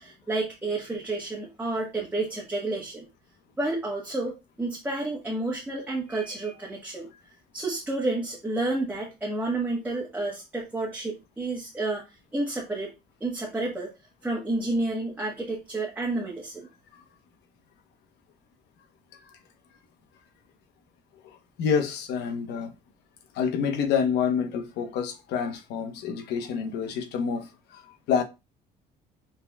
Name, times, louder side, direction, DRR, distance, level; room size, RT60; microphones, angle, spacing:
voice 1, 0.0-3.0 3.6-7.1 7.5-12.9 13.2-13.9 14.2-16.7, right 2 dB, 10° right, 1.3 m, -30 dB
voice 2, 21.2-22.7 23.3-28.2, left 6 dB, 80° left, 1.0 m, -28 dB
6.6 x 3.5 x 2.3 m
cardioid pair, 110°, 17 cm